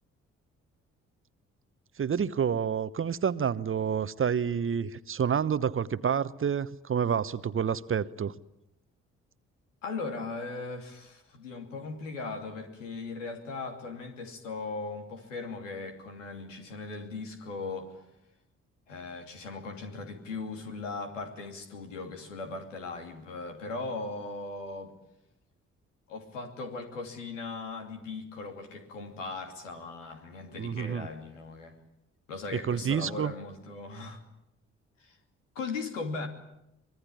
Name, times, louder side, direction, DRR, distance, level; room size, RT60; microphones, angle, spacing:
voice 1, 2.0-8.3 30.6-31.1 32.5-33.3, right 7 dB, 35° right, 1.0 m, -29 dB
voice 2, 9.8-18.0 18.9-24.9 26.1-31.7 32.3-34.2 35.0-35.2 35.5-36.3, left 3 dB, 80° left, 2.9 m, -38 dB
25.0 x 22.5 x 9.9 m
figure-of-eight pair, 40°, 37 cm